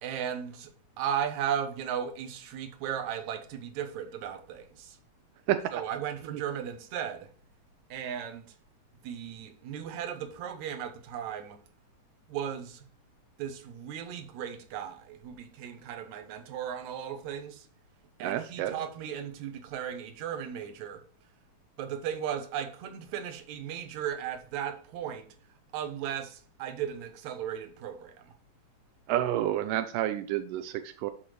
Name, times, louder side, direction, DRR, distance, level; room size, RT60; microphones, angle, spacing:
voice 1, 0.0-5.0 5.7-7.3 7.9-8.5 9.0-11.6 12.3-12.8 13.4-17.7 18.2-21.0 21.8-25.3 25.7-28.3, right 9 dB, 70° right, 2.2 m, -36 dB
voice 2, 18.2-18.8 29.1-31.1, right 12 dB, 85° right, 2.1 m, -29 dB
12.5 x 4.2 x 3.1 m
omnidirectional pair, 3.8 m